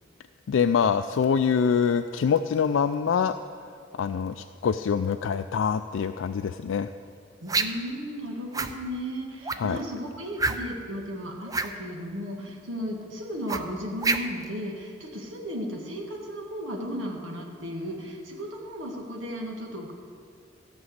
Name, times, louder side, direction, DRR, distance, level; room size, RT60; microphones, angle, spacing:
voice 1, 0.5-3.3 4.0-6.9 9.6-9.8, left 6 dB, 80° left, 8 dB, 0.4 m, -25 dB
voice 2, 7.4-19.9, equal, 85° right, 0 dB, 1.8 m, -35 dB
sound 1, 7.5-7.9 8.5-8.7 9.4-9.8 10.4-10.8 11.5-11.7 13.5-14.5, right 3 dB, 20° right, 0.5 m, -27 dB
14.0 x 6.1 x 8.0 m, 2.5 s
head